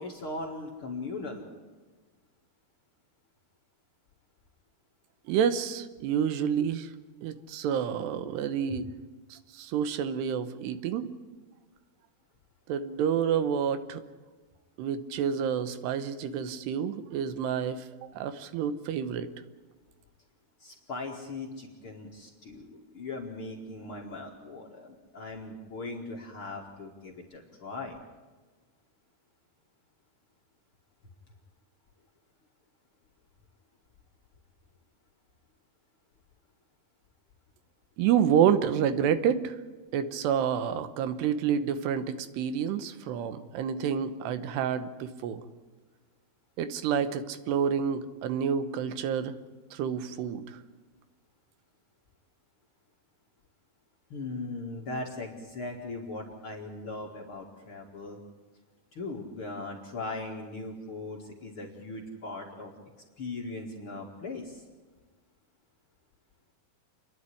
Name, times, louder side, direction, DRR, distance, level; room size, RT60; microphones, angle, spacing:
voice 1, 0.0-1.4 20.6-28.0 54.1-58.2 58.9-62.7 63.2-64.6, left 2 dB, 45° left, -1 dB, 1.9 m, -39 dB
voice 2, 5.3-6.9 7.2-8.9 9.3-11.1 12.7-14.0 14.8-19.3 38.0-39.6 39.9-45.4 46.6-49.3 49.7-50.6, right 8 dB, 85° right, 12 dB, 3.1 m, -29 dB
28.0 x 11.0 x 9.9 m, 1.3 s
omnidirectional pair, 4.7 m